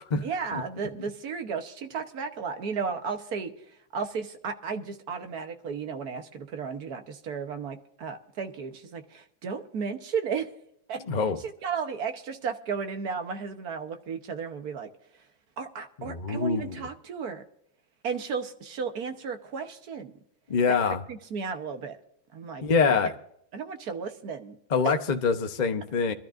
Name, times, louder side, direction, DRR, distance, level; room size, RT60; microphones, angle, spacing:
voice 1, 0.1-10.5 10.9-11.0 11.4-14.9 15.6-17.4 18.0-20.1 20.7-22.0 22.3-23.1 23.5-24.6 24.8-24.9, right 6 dB, 55° right, 1.5 m, -34 dB
voice 2, 11.1-11.4 16.1-16.8 20.5-21.0 22.6-23.1 24.7-26.1, left 5 dB, 40° left, 0.6 m, -25 dB
23.5 x 13.0 x 2.6 m
omnidirectional pair, 2.1 m